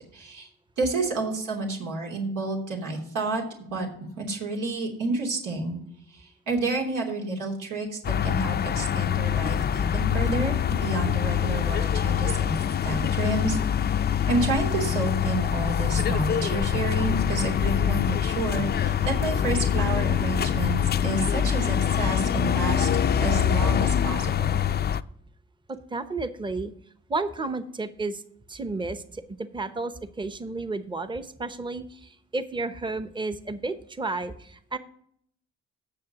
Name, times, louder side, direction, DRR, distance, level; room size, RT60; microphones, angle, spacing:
voice 1, 0.1-0.5 0.8-3.4 3.7-3.9 4.2-5.8 6.1-12.5 12.8-13.6 13.9-22.9 23.2-24.6, right 3 dB, 90° right, -2 dB, 3.1 m, -30 dB
sound 1, 8.0-25.0, left 9 dB, 35° left, 0.4 m, -24 dB
voice 2, 25.7-26.7 27.1-28.2 28.5-34.8, right 3 dB, 15° right, 11 dB, 0.8 m, -32 dB
18.5 x 6.8 x 2.9 m, 0.68 s
cardioid pair, 90°, 30 cm